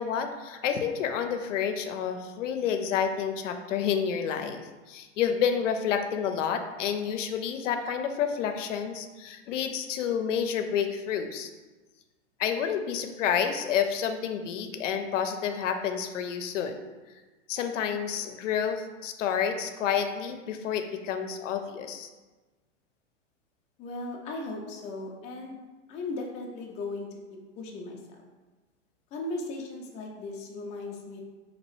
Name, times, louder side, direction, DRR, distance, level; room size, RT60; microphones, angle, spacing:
voice 1, 0.0-11.5 12.4-16.9 17.5-22.1, left 7 dB, 85° left, 7 dB, 0.5 m, -29 dB
voice 2, 23.8-25.6 25.9-28.2 29.1-31.2, left 2 dB, 20° left, -1 dB, 0.3 m, -37 dB
3.0 x 2.8 x 3.0 m, 1.2 s
hypercardioid pair, 120°, 36 cm